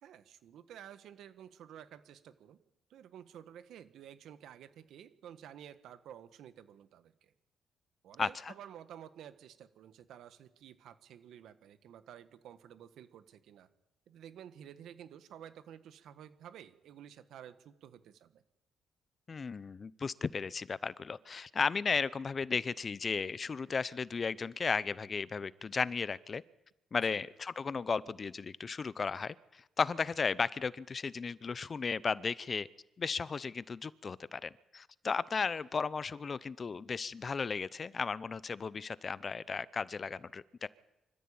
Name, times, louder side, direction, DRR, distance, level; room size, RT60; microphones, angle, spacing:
voice 1, 0.0-2.6 2.9-7.3 8.0-13.7 14.1-18.4 27.0-27.2, right 9 dB, 75° right, 12 dB, 1.5 m, -52 dB
voice 2, 8.2-8.5 19.3-26.4 26.9-32.7 33.0-40.7, left 5 dB, 40° left, 19 dB, 0.7 m, -35 dB
25.5 x 14.0 x 8.8 m, 0.99 s
cardioid pair, 90°, 0 cm